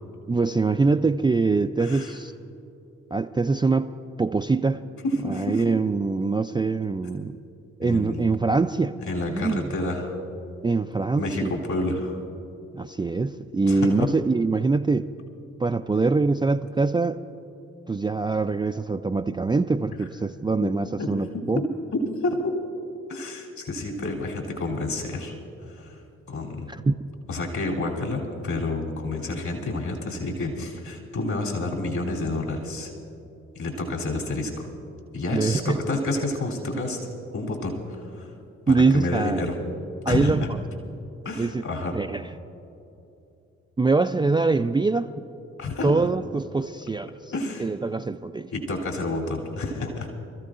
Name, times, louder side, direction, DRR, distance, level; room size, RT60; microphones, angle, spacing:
voice 1, 0.3-2.3 3.1-3.9 4.2-4.8 5.2-7.4 7.8-8.9 9.3-9.7 10.6-11.5 12.7-15.1 15.6-17.2 17.9-21.6 26.7-27.0 35.3-35.8 38.7-39.5 40.0-40.6 41.4-41.6 41.9-42.3 43.8-45.1 45.8-47.1 47.6-48.5, right 3 dB, 15° right, 7 dB, 0.4 m, -23 dB
voice 2, 1.8-2.2 5.0-5.6 7.8-8.3 9.1-10.2 11.0-12.2 13.6-14.1 21.0-21.1 21.5-21.7 22.2-22.5 23.1-25.3 25.6-26.0 26.3-26.7 27.3-32.9 33.5-34.7 35.1-37.0 37.3-38.3 38.7-39.6 40.1-40.5 41.2-42.0 45.6-46.1 47.3-47.6 48.5-50.1, left 2 dB, 60° left, -1 dB, 3.2 m, -29 dB
28.0 x 14.0 x 2.5 m, 2.7 s
hypercardioid pair, 45°, 33 cm